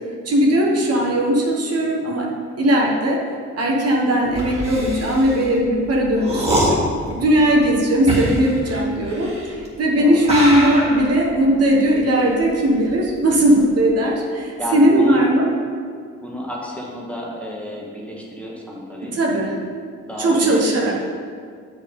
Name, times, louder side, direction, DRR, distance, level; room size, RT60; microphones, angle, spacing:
voice 1, 0.2-2.3 2.6-3.2 3.5-15.4 19.1-19.5 20.2-21.0, right 1 dB, 55° right, -2 dB, 1.4 m, -18 dB
sound 1, 4.3-9.8 10.2-13.1 13.4-13.9, right 1 dB, 20° right, 2.0 m, -26 dB
voice 2, 6.9-7.3 9.9-10.3 13.3-13.6 14.6-15.3 16.2-19.6 20.1-21.0, left 1 dB, 5° left, -3 dB, 1.6 m, -31 dB
7.3 x 5.1 x 5.4 m, 2.1 s
cardioid pair, 90°, 30 cm